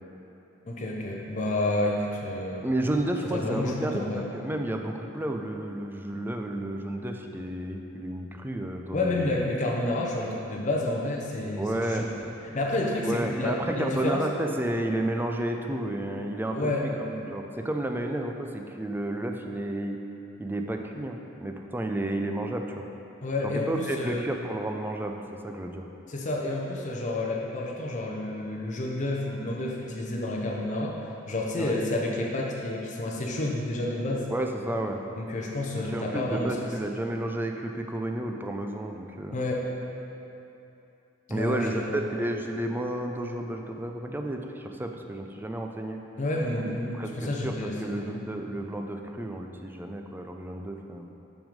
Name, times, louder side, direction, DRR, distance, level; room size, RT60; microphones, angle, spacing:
voice 1, 0.6-2.6 3.3-4.3 8.9-12.0 12.5-14.2 16.5-16.9 23.2-24.2 26.1-30.9 31.3-34.3 35.2-36.6 39.3-39.7 41.3-42.0 46.2-48.3, left 2 dB, 40° left, -2 dB, 0.7 m, -30 dB
voice 2, 2.6-9.4 11.6-12.1 13.0-20.0 20.4-22.9 23.4-25.8 31.5-31.8 34.3-35.0 35.7-39.3 41.3-46.0 46.6-51.1, right 1 dB, 10° right, 3 dB, 0.4 m, -31 dB
6.0 x 5.4 x 5.1 m, 2.9 s
head